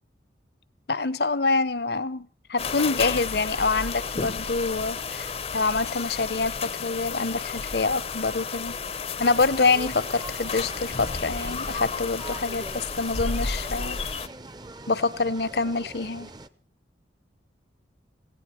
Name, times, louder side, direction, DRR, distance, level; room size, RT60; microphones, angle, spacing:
voice 1, 0.9-8.8 9.2-14.0 14.9-16.3, left 3 dB, 60° left, 18 dB, 0.9 m, -26 dB
sound 1, 2.6-14.3, left 5 dB, 35° left, 0.6 m, -32 dB
sound 2, 9.2-16.5, right 2 dB, 25° right, 0.7 m, -43 dB
17.5 x 16.5 x 4.5 m, 0.40 s
head